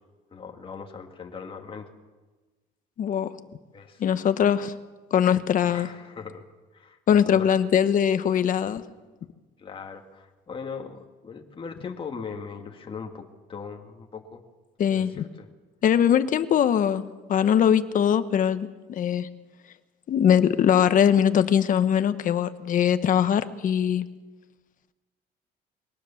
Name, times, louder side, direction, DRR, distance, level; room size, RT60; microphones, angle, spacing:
voice 1, 0.3-1.9 3.7-4.0 5.7-6.4 6.7-7.6 9.6-14.4 14.9-15.5, left 5 dB, 30° left, 3 dB, 2.3 m, -39 dB
voice 2, 3.0-3.3 4.0-4.7 5.1-5.9 7.1-8.8 14.8-15.2 15.8-17.0 17.3-19.3 20.1-24.1, left 9 dB, 50° left, 11 dB, 1.3 m, -21 dB
22.5 x 18.5 x 7.3 m, 1.3 s
cardioid pair, 110°, 17 cm